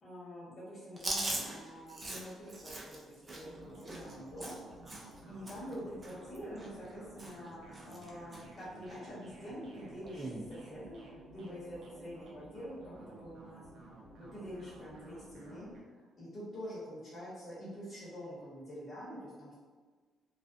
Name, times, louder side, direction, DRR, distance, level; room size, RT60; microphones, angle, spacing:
voice 1, 0.0-4.6 5.3-11.0 11.3-13.6 14.3-15.7 16.1-19.6, equal, 35° left, -10 dB, 1.0 m, -46 dB
Chewing mastication, 1.0-5.2 5.5-5.7 6.0-6.9 7.2-7.5 7.7-8.4 8.9-9.0 10.0-10.4, right 1 dB, 25° right, 0.5 m, -41 dB
sound 1, 3.4-15.8, right 2 dB, 80° right, 0.5 m, -54 dB
2.3 x 2.2 x 2.5 m, 1.4 s
cardioid pair, 90°, 0 cm